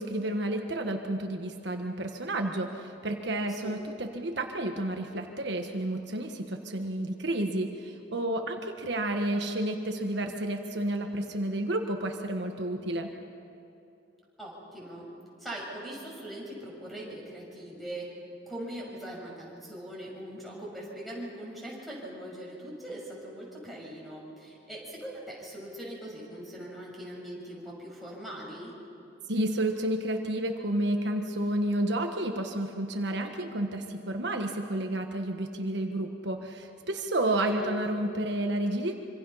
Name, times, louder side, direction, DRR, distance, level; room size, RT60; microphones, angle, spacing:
voice 1, 0.0-13.1 29.3-39.0, right 1 dB, 65° right, 4 dB, 1.4 m, -31 dB
voice 2, 14.4-15.1 15.4-18.1 18.4-28.7 37.4-37.9, right 1 dB, ahead, -3 dB, 6.5 m, -41 dB
26.0 x 25.0 x 5.7 m, 2.8 s
head